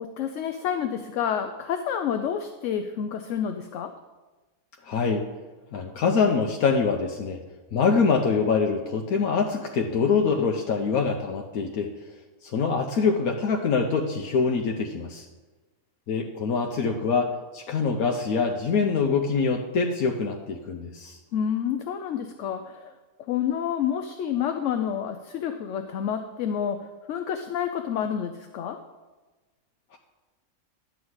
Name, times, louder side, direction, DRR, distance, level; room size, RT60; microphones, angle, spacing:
voice 1, 0.0-3.9 21.3-22.9 23.3-28.8, left 8 dB, 70° left, 7 dB, 0.9 m, -29 dB
voice 2, 4.9-5.2 5.7-7.4 7.7-11.9 12.4-15.2 16.1-21.2, left 5 dB, 85° left, 2 dB, 1.2 m, -24 dB
11.0 x 4.7 x 7.9 m, 1.2 s
omnidirectional pair, 1.5 m